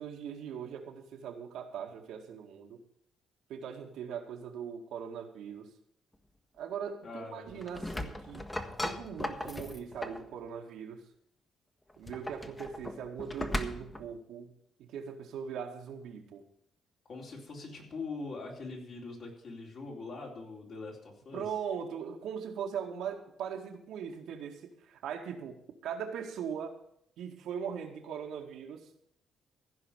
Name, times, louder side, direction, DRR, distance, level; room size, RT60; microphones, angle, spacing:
voice 1, 0.0-2.8 3.5-5.7 6.6-8.5 8.8-11.1 12.0-16.4 21.3-26.7 27.2-28.9, right 7 dB, 85° right, 2 dB, 1.9 m, -40 dB
voice 2, 7.0-7.6 17.1-21.4, left 3 dB, 55° left, -1 dB, 4.0 m, -42 dB
sound 1, 7.5-10.3 11.9-14.1, left 1 dB, 15° left, 1.3 m, -38 dB
15.5 x 5.1 x 9.1 m, 0.69 s
cardioid pair, 90°, 0 cm